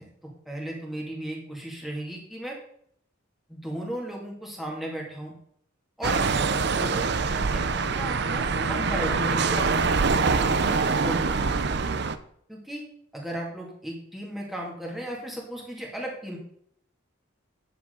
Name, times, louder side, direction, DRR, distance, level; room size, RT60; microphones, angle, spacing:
voice 1, 0.0-2.6 3.5-5.3 6.0-6.2 6.7-11.7 12.5-12.8 13.1-16.4, right 1 dB, ahead, -3 dB, 2.3 m, -36 dB
sound 1, 6.0-12.2, right 4 dB, 50° right, 0.5 m, -24 dB
10.0 x 7.4 x 3.8 m, 0.67 s
head